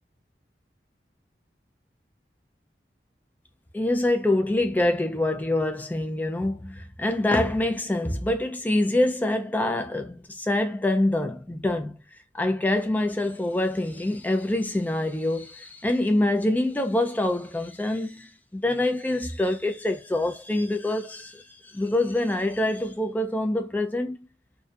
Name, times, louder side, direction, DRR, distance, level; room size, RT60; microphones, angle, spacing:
voice 1, 3.7-12.0 12.3-24.2, left 1 dB, 10° left, 0.3 m, -25 dB
2.4 x 2.1 x 2.5 m
head